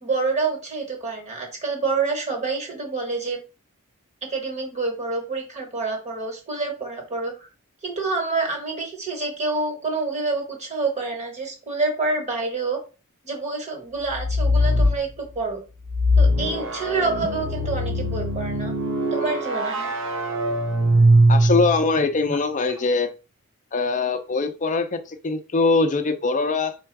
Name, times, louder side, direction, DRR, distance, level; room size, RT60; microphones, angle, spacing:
voice 1, 0.0-3.4 4.2-7.5 7.8-12.8 13.2-15.6 16.2-18.7 19.1-19.9, right 3 dB, 30° right, 2 dB, 1.3 m, -27 dB
sound 1, 14.1-15.0 15.9-21.9, equal, 55° right, 0.7 m, -21 dB
voice 2, 21.3-23.1 23.7-26.8, left 3 dB, 35° left, 8 dB, 0.5 m, -22 dB
4.4 x 2.3 x 4.5 m, 0.32 s
head